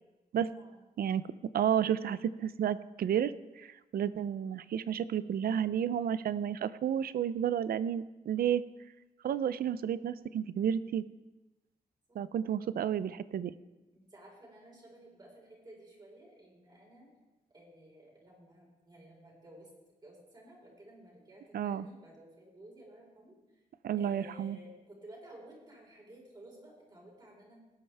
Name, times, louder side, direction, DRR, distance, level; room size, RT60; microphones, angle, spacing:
voice 1, 0.4-0.9 12.1-12.2 13.9-17.1 17.5-19.7 20.0-23.3 24.0-27.6, right 1 dB, 30° right, -3 dB, 4.3 m, -54 dB
voice 2, 1.5-8.6 9.2-11.0 12.2-13.5 21.5-21.9 23.8-24.6, right 9 dB, 80° right, 16 dB, 0.5 m, -31 dB
18.0 x 9.1 x 3.4 m, 1.1 s
wide cardioid pair, 135°, 15 cm